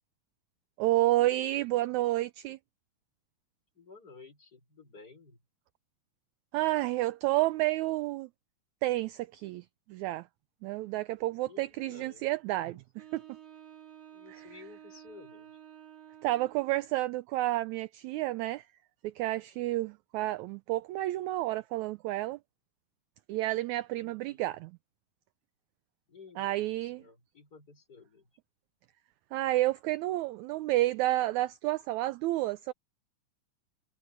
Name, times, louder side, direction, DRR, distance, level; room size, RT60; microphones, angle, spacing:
voice 1, 0.8-2.6 6.5-8.3 8.8-10.3 10.6-13.2 14.3-14.5 16.2-18.6 19.0-22.4 23.3-24.8 26.4-27.0 29.3-32.7, right 16 dB, 80° right, 1.7 m, -30 dB
voice 2, 3.7-5.4 11.5-12.2 12.5-12.8 14.1-15.5 24.0-24.4 26.1-28.3, left 4 dB, 25° left, 5.6 m, -54 dB
Wind instrument woodwind instrument, 13.0-17.1, right 11 dB, 40° right, 3.6 m, -52 dB
omnidirectional pair, 3.8 m